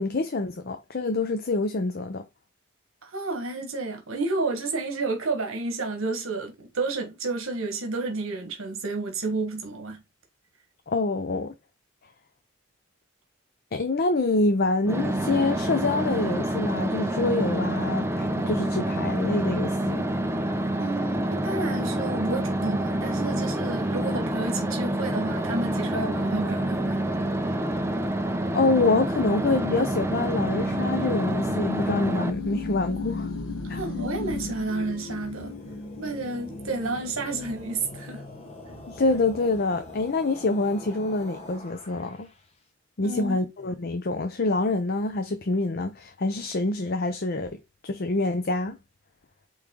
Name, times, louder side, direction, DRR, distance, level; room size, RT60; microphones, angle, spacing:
voice 1, 0.0-2.3 10.9-11.5 13.7-20.0 28.5-33.3 33.7-33.8 38.9-42.3 43.0-47.6 47.8-48.8, left 3 dB, 50° left, 0.6 m, -26 dB
voice 2, 3.0-10.0 20.8-27.0 33.7-35.5 36.0-38.2 43.0-43.4, right 3 dB, 75° right, 1.4 m, -31 dB
sound 1, 14.8-32.3, right 1 dB, 10° right, 0.7 m, -27 dB
sound 2, 27.8-40.2, left 3 dB, 90° left, 1.3 m, -38 dB
sound 3, 35.1-42.5, left 1 dB, 30° left, 1.4 m, -45 dB
8.2 x 3.2 x 3.7 m
head